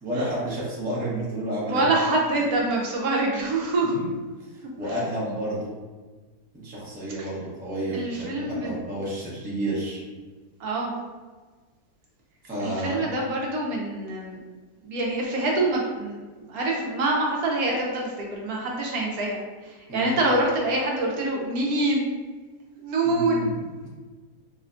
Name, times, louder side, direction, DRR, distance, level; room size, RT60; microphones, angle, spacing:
voice 1, 0.0-1.8 3.8-4.1 4.5-5.7 6.5-10.0 12.4-13.0 19.9-20.2 23.0-23.9, right 1 dB, 10° right, -8 dB, 0.6 m, -31 dB
voice 2, 1.7-3.9 7.2-7.3 7.9-8.8 10.6-10.9 12.6-14.4 14.8-16.2 16.5-22.1 22.8-23.5, right 2 dB, 70° right, -2 dB, 1.0 m, -25 dB
4.8 x 2.2 x 2.5 m, 1.4 s
omnidirectional pair, 1.7 m